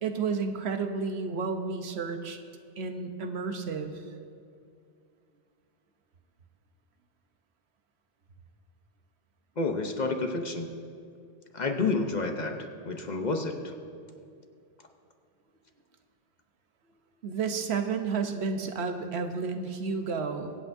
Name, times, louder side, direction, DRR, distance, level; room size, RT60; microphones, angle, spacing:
voice 1, 0.0-2.4 2.8-3.9 17.2-20.6, right 5 dB, 75° right, 6 dB, 1.0 m, -31 dB
voice 2, 9.6-10.7 11.5-13.7, left 3 dB, 45° left, 4 dB, 0.8 m, -30 dB
24.0 x 8.4 x 2.6 m, 2.4 s
omnidirectional pair, 1.1 m